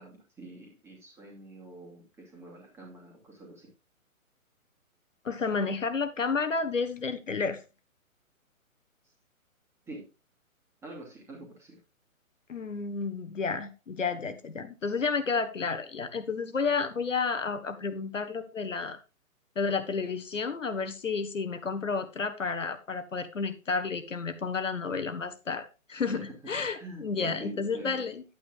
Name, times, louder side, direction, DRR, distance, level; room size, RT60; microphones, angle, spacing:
voice 1, 0.0-3.7 9.0-9.1 9.9-10.1 10.8-11.8 26.1-26.5 26.8-28.0, right 2 dB, 5° right, -1 dB, 2.6 m, -45 dB
voice 2, 5.2-7.6 12.5-19.0 19.5-28.2, left 4 dB, 60° left, 8 dB, 1.6 m, -31 dB
10.5 x 9.0 x 2.5 m, 0.29 s
figure-of-eight pair, 130°, 42 cm